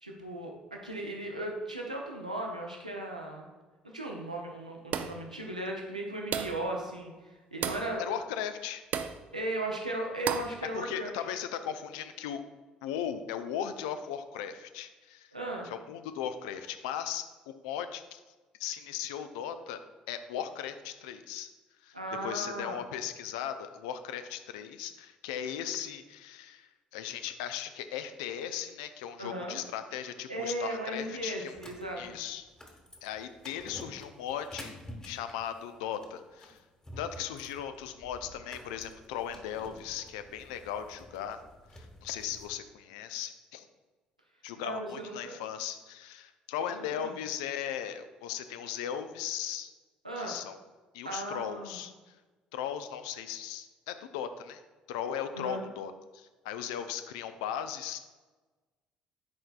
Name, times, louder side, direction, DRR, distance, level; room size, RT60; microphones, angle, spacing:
voice 1, 0.0-3.5 3.8-8.0 9.3-11.1 15.3-15.7 21.9-22.8 29.2-29.6 30.3-32.2 44.6-45.4 46.7-47.1 50.0-50.3 51.0-51.8 55.3-55.7, right 1 dB, 90° right, 0 dB, 0.7 m, -36 dB
sound 1, 4.9-5.3 6.3-6.7 7.6-7.9 8.9-9.2 10.3-10.6, right 8 dB, 50° right, 0.4 m, -33 dB
voice 2, 8.0-8.8 10.7-12.4 12.8-15.3 15.6-18.2 18.6-19.8 20.1-21.5 21.8-31.6 32.0-32.4 33.0-34.8 35.0-36.6 37.0-41.4 41.7-43.7 44.4-49.7 50.2-50.6 50.9-51.9 52.5-54.6 54.9-58.0, left 9 dB, 65° left, 10 dB, 0.4 m, -37 dB
sound 2, 31.5-42.5, equal, 20° left, 1.4 m, -50 dB
10.5 x 4.4 x 2.4 m, 1.3 s
figure-of-eight pair, 50°, 4 cm